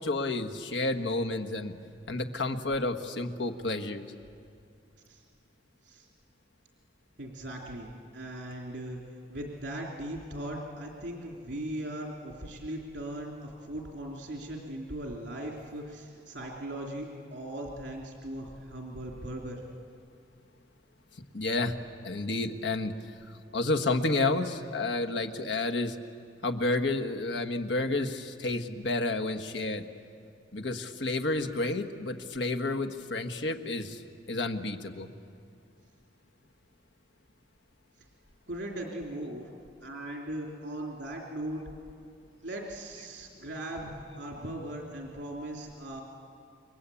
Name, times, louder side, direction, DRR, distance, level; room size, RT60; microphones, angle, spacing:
voice 1, 0.0-1.7 2.1-4.1 21.3-21.8 22.0-22.9 23.5-25.9 26.4-29.8 30.5-34.0 34.3-35.1, left 2 dB, 80° left, 7 dB, 1.6 m, -30 dB
voice 2, 7.2-19.6 38.5-39.5 39.8-41.6 42.4-46.0, right 1 dB, 75° right, -1 dB, 3.3 m, -39 dB
29.0 x 23.0 x 8.6 m, 2.3 s
head